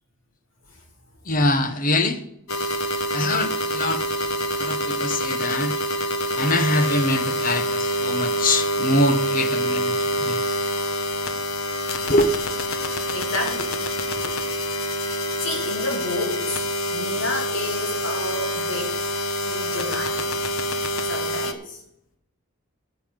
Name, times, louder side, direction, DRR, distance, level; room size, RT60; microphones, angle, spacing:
voice 1, 1.2-2.2 3.1-4.0 4.6-5.8 6.4-10.4 12.1-12.5 14.2-14.4, left 1 dB, 40° left, 9 dB, 1.2 m, -23 dB
sound 1, 2.5-21.5, equal, 85° left, 1.2 m, -26 dB
voice 2, 13.1-13.8 14.3-14.5 15.4-19.0 19.4-20.3 21.0-21.8, left 2 dB, 60° left, 2 dB, 2.9 m, -31 dB
13.5 x 5.7 x 7.8 m, 0.77 s
head